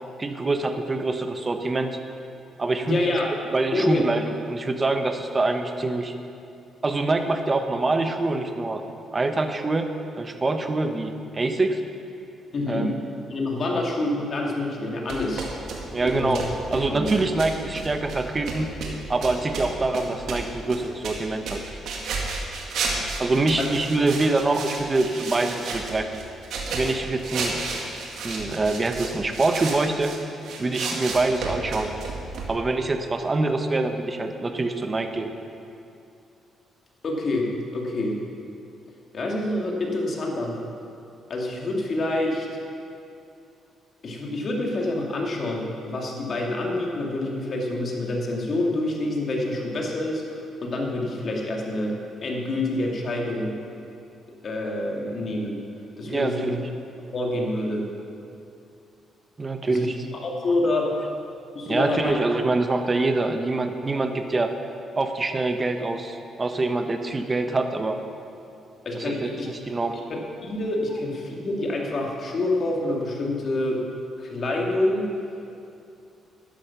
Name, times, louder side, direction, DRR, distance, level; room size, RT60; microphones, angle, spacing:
voice 1, 0.2-2.0 2.6-3.0 3.5-6.1 6.8-8.8 9.1-9.9 10.1-11.8 12.7-12.9 15.9-16.4 16.7-18.7 19.1-21.6 23.2-26.1 26.7-27.6 28.2-30.1 30.6-32.0 32.5-35.3 56.1-56.6 59.4-60.0 61.7-64.5 65.0-68.0 68.9-69.3 69.7-70.0, right 2 dB, 25° right, 6 dB, 1.1 m, -25 dB
voice 2, 2.8-3.3 3.7-4.0 12.5-12.9 13.3-15.5 15.9-16.4 16.9-17.2 23.6-23.7 37.0-38.2 39.1-40.6 41.3-42.5 44.0-52.0 52.2-53.5 54.4-55.6 56.0-56.6 57.1-57.8 59.7-59.9 60.2-61.0 61.5-62.2 68.8-69.5 70.1-73.8 74.2-75.1, left 2 dB, 50° left, -1 dB, 2.4 m, -27 dB
sound 1, 15.1-30.2 30.4-32.5, right 3 dB, 75° right, 2.0 m, -32 dB
12.0 x 10.5 x 5.9 m, 2.6 s
cardioid pair, 90°, 0 cm